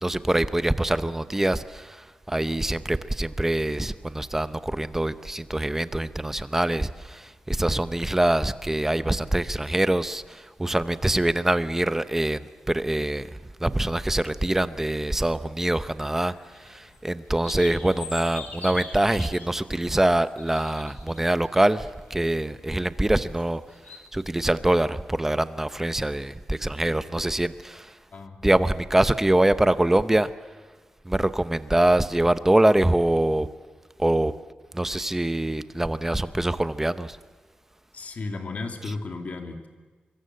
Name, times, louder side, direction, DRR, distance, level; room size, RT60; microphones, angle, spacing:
voice 1, 0.0-28.0 28.4-30.6 31.0-33.5 34.0-34.3 34.7-37.2 38.9-39.0, right 1 dB, 10° right, 13 dB, 0.8 m, -24 dB
sound 1, 16.0-24.0, left 4 dB, 85° left, 4.1 m, -43 dB
voice 2, 37.9-39.7, left 3 dB, 55° left, 5 dB, 2.8 m, -34 dB
24.5 x 24.0 x 7.8 m, 1.4 s
wide cardioid pair, 140°, 3 cm